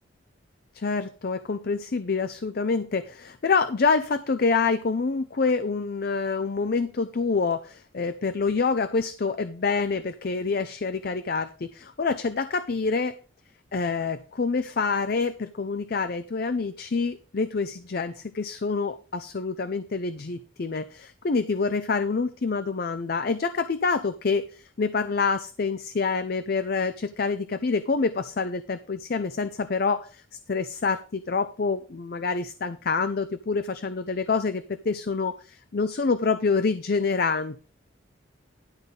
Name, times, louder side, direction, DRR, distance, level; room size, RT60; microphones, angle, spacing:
voice 1, 0.7-13.2 13.7-30.2 30.5-37.6, left 4 dB, 50° left, 11 dB, 0.5 m, -27 dB
11.5 x 4.0 x 6.9 m, 0.38 s
head